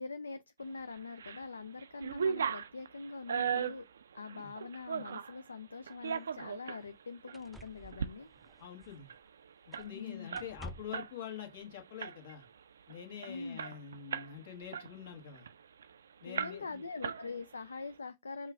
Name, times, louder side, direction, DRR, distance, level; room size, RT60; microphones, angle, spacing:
voice 1, 0.0-3.9 4.1-8.3 9.9-10.3 13.2-13.6 16.3-18.5, left 4 dB, 90° left, 0.3 m, -43 dB
sound 1, 0.9-1.4 1.8-5.4 5.9-6.8 7.3-7.4 7.8-8.1 8.4-8.5 8.8-11.1 11.4-11.6 12.0-12.4 12.9-13.0 13.2-14.4 14.7-15.9 16.3-16.8 17.0-17.7, right 7 dB, 80° right, 0.3 m, -37 dB
sound 2, 6.1-6.2 6.8-6.9 7.3-9.3 9.7-10.0 10.3-11.1 12.2-12.3, equal, 5° right, 0.4 m, -51 dB
voice 2, 8.6-9.1 9.7-12.4 12.9-15.5 16.2-16.8, left 9 dB, 70° left, 1.5 m, -46 dB
5.4 x 2.4 x 3.5 m
hypercardioid pair, 95°, 0 cm